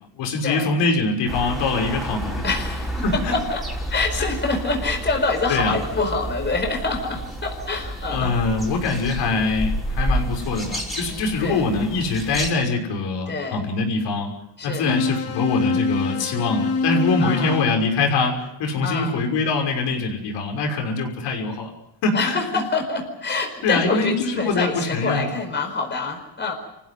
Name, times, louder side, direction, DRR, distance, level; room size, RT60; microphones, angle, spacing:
voice 1, 0.2-2.4 3.0-3.3 5.5-5.8 8.1-14.3 14.6-21.7 22.0-22.4 23.6-25.3, left 3 dB, 70° left, 2 dB, 6.3 m, -23 dB
sound 1, 1.3-12.5, right 1 dB, ahead, 5.5 m, -30 dB
voice 2, 2.4-3.6 3.9-8.4 11.4-11.7 13.3-13.7 14.6-14.9 17.2-17.6 18.8-19.2 22.1-26.5, left 3 dB, 25° left, 3 dB, 4.8 m, -26 dB
sound 2, 14.8-17.8, left 4 dB, 55° left, 3.3 m, -25 dB
26.5 x 16.0 x 9.7 m, 0.86 s
cardioid pair, 125°, 44 cm